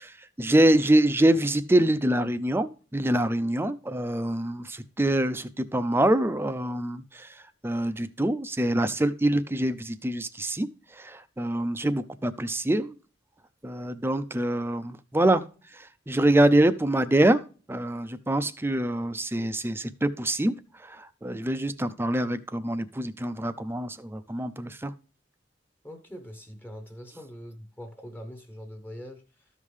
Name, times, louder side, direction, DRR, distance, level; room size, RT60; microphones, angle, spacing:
voice 1, 0.0-7.3 7.6-10.7 10.9-13.0 13.6-15.4 15.7-17.4 17.7-20.6 20.8-24.9, right 1 dB, 10° right, 0.5 m, -25 dB
voice 2, 25.8-29.5, equal, 10° left, 0.9 m, -43 dB
13.5 x 5.5 x 3.2 m
head